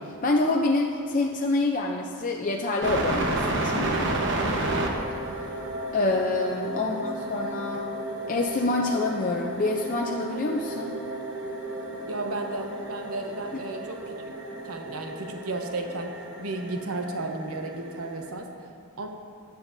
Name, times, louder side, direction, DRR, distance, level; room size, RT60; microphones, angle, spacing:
voice 1, 0.0-4.2 5.3-5.7 5.9-7.9 8.3-10.9, left 2 dB, 35° left, 0 dB, 0.6 m, -27 dB
sound 1, 2.8-18.3, right 2 dB, 55° right, 1.1 m, -32 dB
voice 2, 12.1-14.3 14.6-16.1 16.4-18.5 19.0-19.1, right 2 dB, 75° right, 3 dB, 1.0 m, -33 dB
16.0 x 10.5 x 2.7 m, 2.5 s
head